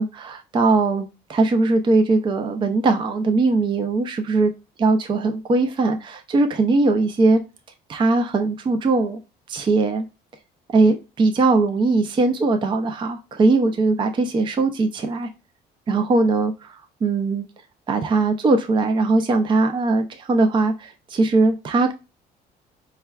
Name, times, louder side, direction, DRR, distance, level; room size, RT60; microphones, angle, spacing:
voice 1, 0.0-4.5 4.8-7.4 7.9-9.2 9.5-10.0 10.7-15.3 15.9-16.5 17.0-17.5 17.9-21.9, right 3 dB, 30° right, 0.4 m, -20 dB
4.4 x 2.2 x 2.3 m
cardioid pair, 110°, 17 cm